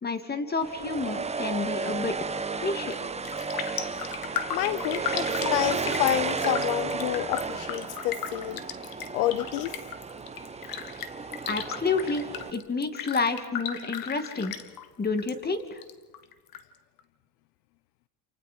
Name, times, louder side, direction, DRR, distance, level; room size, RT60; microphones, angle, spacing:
voice 1, 0.0-2.3 2.6-3.0 11.5-14.5 15.0-15.8, left 4 dB, 20° left, 8 dB, 2.6 m, -29 dB
sound 1, 0.6-12.5, right 4 dB, 15° right, 1.1 m, -33 dB
Raindrop, 2.8-3.0 3.2-15.3 15.6-16.6 17.0-17.1, left 9 dB, 45° left, 2.0 m, -36 dB
voice 2, 4.5-8.6 9.1-9.8, left 14 dB, 80° left, 15 dB, 0.9 m, -28 dB
29.0 x 28.5 x 4.6 m, 1.2 s
supercardioid pair, 110°, 48 cm